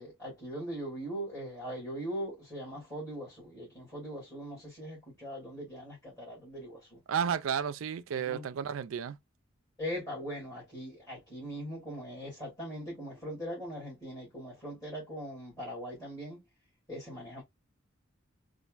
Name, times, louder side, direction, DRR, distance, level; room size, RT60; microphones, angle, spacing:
voice 1, 0.0-7.0 8.1-8.4 9.8-16.4 16.9-17.4, equal, 20° left, 2.5 m, -40 dB
voice 2, 7.1-9.2, right 7 dB, 80° right, 0.4 m, -32 dB
4.3 x 2.5 x 2.4 m
head